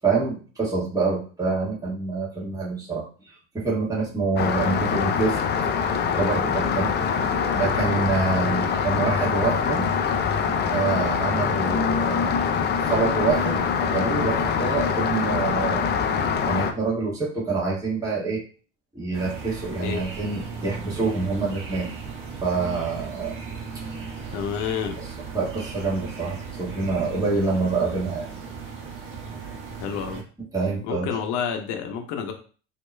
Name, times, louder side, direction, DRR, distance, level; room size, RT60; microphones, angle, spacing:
voice 1, 0.0-5.4 6.1-6.9 7.5-9.9 10.7-12.4 12.8-15.9 16.5-18.4 18.9-21.9 22.4-23.3 25.0-25.1 25.3-28.3 30.5-31.1, right 4 dB, 10° right, -5 dB, 1.6 m, -26 dB
Rain, 4.4-16.7, left 6 dB, 30° left, 0.6 m, -24 dB
sound 1, 19.1-30.2, right 5 dB, 35° right, 1.4 m, -37 dB
voice 2, 24.3-25.0 29.8-30.2 30.8-32.3, left 7 dB, 55° left, 5 dB, 1.0 m, -29 dB
6.1 x 2.9 x 2.2 m, 0.39 s
hypercardioid pair, 75°, 36 cm